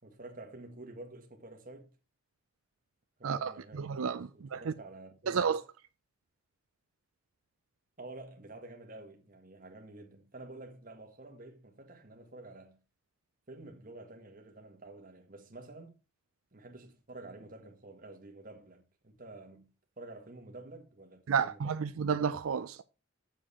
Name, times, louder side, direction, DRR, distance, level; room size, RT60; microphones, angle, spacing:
voice 1, 0.0-1.9 3.2-4.1 4.3-5.5 8.0-12.8 13.5-16.0 16.5-19.7 20.0-21.9, right 2 dB, 40° right, 1.7 m, -49 dB
voice 2, 3.2-4.7 5.3-5.6 21.3-22.8, right 6 dB, 90° right, 0.5 m, -31 dB
7.4 x 7.3 x 4.3 m
head